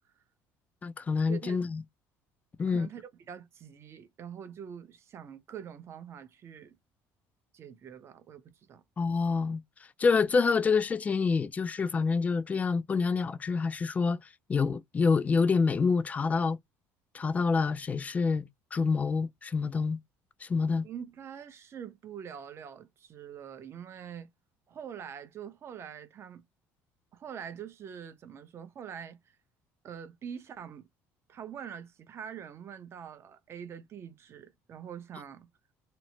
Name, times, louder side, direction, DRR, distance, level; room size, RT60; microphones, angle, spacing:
voice 1, 0.8-1.8 2.6-2.9 9.0-9.6 10.0-14.2 14.5-16.6 17.1-18.5 18.7-20.0 20.4-20.8, left 4 dB, 20° left, 0.3 m, -27 dB
voice 2, 2.7-6.8 7.5-8.8 20.8-24.3 24.7-26.4 27.1-29.4 29.8-30.9 31.3-35.5, right 8 dB, 40° right, 0.7 m, -44 dB
3.0 x 2.0 x 2.7 m
cardioid pair, 130°, 7 cm